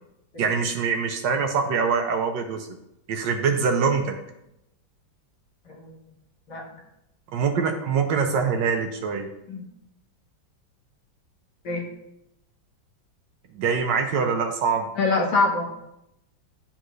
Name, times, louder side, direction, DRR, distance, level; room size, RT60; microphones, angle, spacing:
voice 1, 0.4-2.7 3.1-4.2 7.3-9.3 13.5-14.9, right 5 dB, 70° right, 5 dB, 1.2 m, -24 dB
voice 2, 5.7-6.0 6.5-6.6 9.5-9.6 11.6-11.8 15.0-15.7, left 3 dB, 60° left, 1 dB, 1.5 m, -24 dB
9.9 x 3.7 x 3.1 m, 0.84 s
omnidirectional pair, 2.2 m